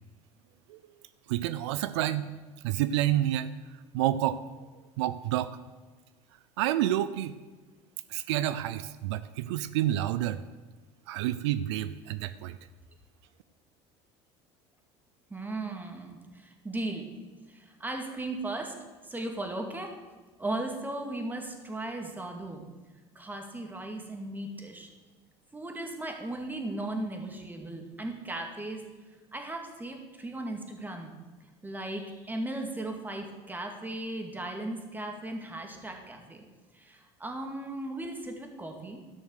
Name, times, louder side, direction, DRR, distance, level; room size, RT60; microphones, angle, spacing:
voice 1, 1.3-2.3 2.6-3.5 3.9-4.4 5.0-5.6 6.6-7.4 8.1-10.4 11.1-12.6, right 13 dB, 85° right, 14 dB, 0.5 m, -29 dB
voice 2, 15.3-17.1 17.5-18.7 19.0-20.0 20.4-22.6 23.2-24.9 25.5-28.8 29.3-31.1 31.6-36.4 36.7-39.0, right 2 dB, 15° right, 3 dB, 2.1 m, -37 dB
13.0 x 6.4 x 6.4 m, 1.3 s
supercardioid pair, 100°, 14 cm